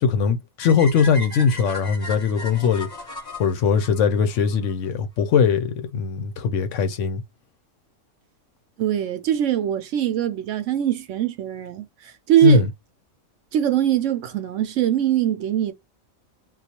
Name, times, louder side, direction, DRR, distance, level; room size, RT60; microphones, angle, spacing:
voice 1, 0.0-2.9 3.4-7.2 12.4-12.7, left 6 dB, 70° left, 0.9 m, -20 dB
sound 1, 0.6-4.7, left 2 dB, 20° left, 1.0 m, -36 dB
voice 2, 8.8-12.6 13.5-15.7, right 11 dB, 70° right, 0.8 m, -22 dB
3.9 x 2.4 x 2.8 m
omnidirectional pair, 1.4 m